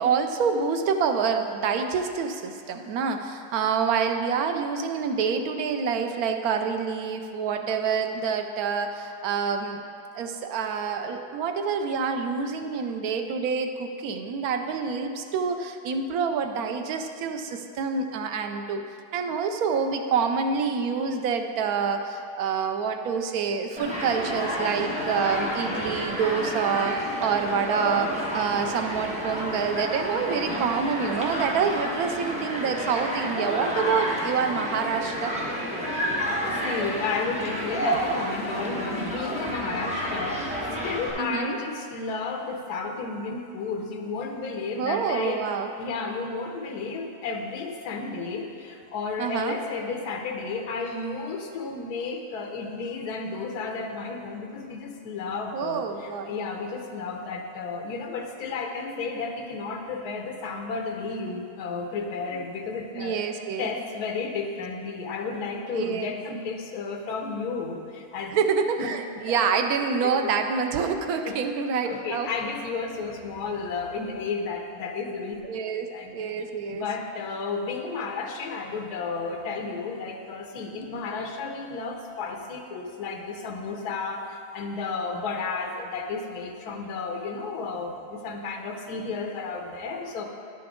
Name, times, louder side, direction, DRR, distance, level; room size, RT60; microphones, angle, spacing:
voice 1, 0.0-9.8 10.1-18.8 19.1-35.4 41.2-41.6 44.8-45.7 49.2-49.6 55.5-56.3 62.3-62.4 62.9-63.7 65.7-66.1 68.3-72.3 75.4-76.8, right 6 dB, 75° right, 6 dB, 1.0 m, -27 dB
Human group actions, 23.8-41.1, equal, 5° right, 1.0 m, -30 dB
voice 2, 35.9-40.5 40.8-45.4 45.8-63.2 63.6-68.3 68.8-68.9 69.3-69.4 71.2-71.4 71.8-75.4 75.9-76.1 76.8-90.2, left 4 dB, 80° left, 3 dB, 1.2 m, -32 dB
10.5 x 5.9 x 3.6 m, 2.4 s
omnidirectional pair, 1.7 m